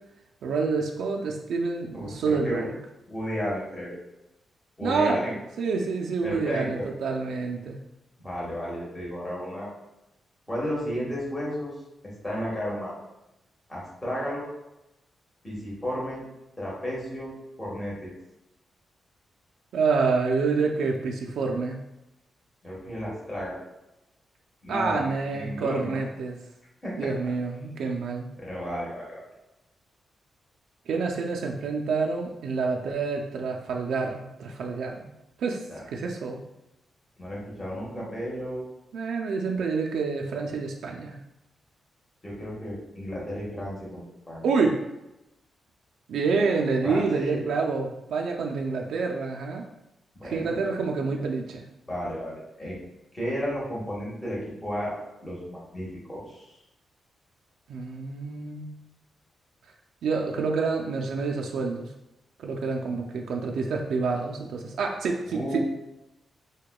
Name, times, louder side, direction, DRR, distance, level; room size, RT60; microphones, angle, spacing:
voice 1, 0.4-2.8 4.8-5.2 5.6-7.8 19.7-21.8 24.7-26.4 27.0-28.3 30.9-35.1 35.4-35.6 35.9-36.4 38.0-38.1 38.9-41.2 44.4-44.8 46.1-49.7 50.2-51.6 57.7-58.7 60.0-61.9 62.4-65.6, right 4 dB, 80° right, 1 dB, 0.3 m, -27 dB
voice 2, 1.9-2.7 3.1-3.9 4.8-5.4 6.2-6.9 8.2-9.7 10.5-11.7 12.2-12.9 13.7-14.4 15.4-16.2 16.6-18.1 22.6-23.6 24.6-26.0 26.8-27.1 28.4-29.2 35.7-35.8 37.2-38.6 42.2-44.5 46.8-47.4 50.2-50.5 51.9-52.8 53.1-54.9 55.2-56.5 65.2-65.6, equal, 10° left, -6 dB, 1.0 m, -33 dB
4.6 x 2.2 x 2.2 m, 0.93 s
wide cardioid pair, 160°, 0 cm